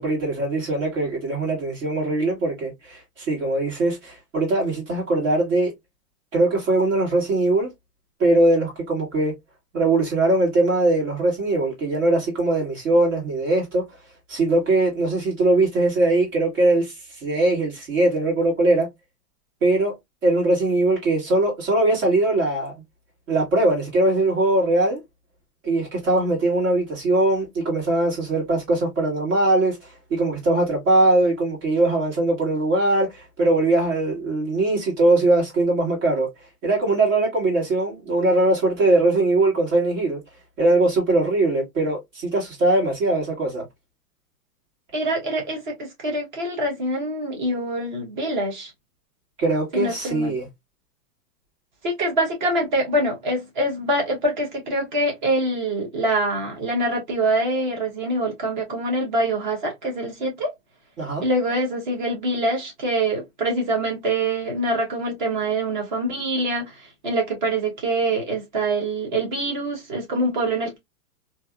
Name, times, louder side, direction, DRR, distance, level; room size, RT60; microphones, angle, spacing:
voice 1, 0.0-5.7 6.3-7.7 8.2-9.3 9.7-13.9 14.3-18.9 19.6-19.9 20.2-22.7 23.3-25.0 25.6-36.3 36.6-40.2 40.6-43.7 49.4-50.5 61.0-61.2, right 2 dB, 55° right, 1.9 m, -21 dB
voice 2, 44.9-48.7 49.7-50.3 51.8-60.5 61.2-70.8, right 1 dB, 30° right, 1.0 m, -25 dB
2.9 x 2.7 x 2.3 m
supercardioid pair, 180°, 46 cm